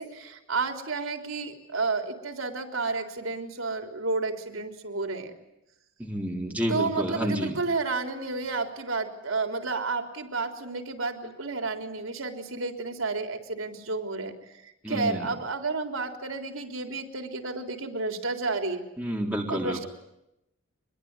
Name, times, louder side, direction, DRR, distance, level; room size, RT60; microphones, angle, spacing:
voice 1, 0.0-5.3 6.7-18.8 19.5-19.9, right 3 dB, 85° right, 4 dB, 3.8 m, -31 dB
voice 2, 6.0-7.6 14.8-15.3 19.0-19.9, equal, 5° right, 0 dB, 3.7 m, -30 dB
26.0 x 22.0 x 9.8 m, 0.86 s
head